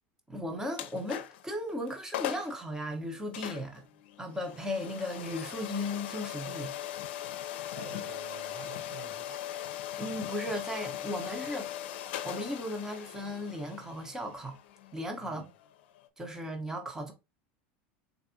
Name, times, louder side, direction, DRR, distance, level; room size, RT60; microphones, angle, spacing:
voice 1, 0.3-3.9 4.2-6.7 10.0-14.6 14.9-15.4 16.2-17.1, left 1 dB, 10° right, 0.9 m, -36 dB
sound 1, 0.7-1.5 1.9-2.0 2.1-2.6 3.3-16.1, left 12 dB, 80° left, 0.5 m, -40 dB
voice 2, 7.7-9.4 15.2-15.5, right 5 dB, 80° right, 1.1 m, -47 dB
4.0 x 3.4 x 2.7 m
supercardioid pair, 115°, 6 cm